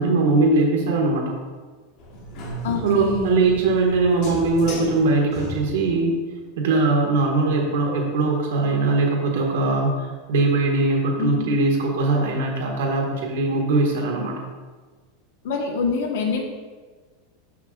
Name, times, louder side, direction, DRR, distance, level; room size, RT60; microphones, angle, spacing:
voice 1, 0.0-1.3 2.8-6.1 6.6-14.3, right 3 dB, 80° right, -1 dB, 1.8 m, -21 dB
sound 1, 2.0-6.1, equal, 35° left, 1.6 m, -35 dB
voice 2, 2.6-3.4 11.2-11.5 15.4-16.4, left 5 dB, 65° left, 1 dB, 1.4 m, -25 dB
12.5 x 5.7 x 2.5 m, 1.4 s
supercardioid pair, 180°, 0 cm